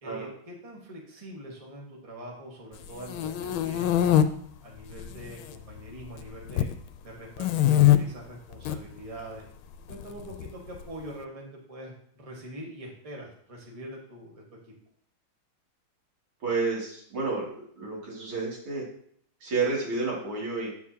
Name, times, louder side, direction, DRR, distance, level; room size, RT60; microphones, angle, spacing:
voice 1, 0.0-4.2 4.6-6.7 7.0-9.5 9.9-14.7, right 1 dB, 20° right, -2 dB, 1.3 m, -43 dB
sound 1, 2.8-4.2 4.9-5.5 5.8-6.8 7.4-8.0 8.5-8.8 9.9-10.8, left 12 dB, 85° left, 1.4 m, -23 dB
voice 2, 16.4-18.8 19.4-20.7, right 4 dB, 90° right, -3 dB, 3.1 m, -30 dB
8.8 x 7.4 x 2.8 m, 0.63 s
omnidirectional pair, 2.2 m